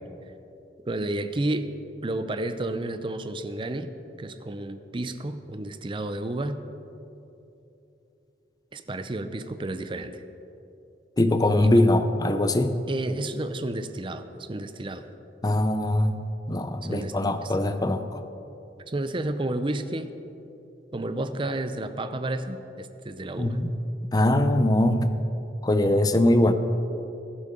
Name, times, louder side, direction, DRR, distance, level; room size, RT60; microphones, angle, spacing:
voice 1, 0.9-1.7 2.0-3.9 4.2-6.6 8.7-10.2 11.6-11.7 12.9-15.1 16.8-17.1 17.4-17.5 18.9-20.1 20.9-23.6, right 2 dB, 30° right, 10 dB, 0.5 m, -31 dB
voice 2, 11.2-12.7 15.4-16.2 16.5-18.2 23.4-23.7 24.1-25.1 25.6-26.5, left 1 dB, 20° left, 9 dB, 0.6 m, -22 dB
16.5 x 11.0 x 3.8 m, 2.9 s
head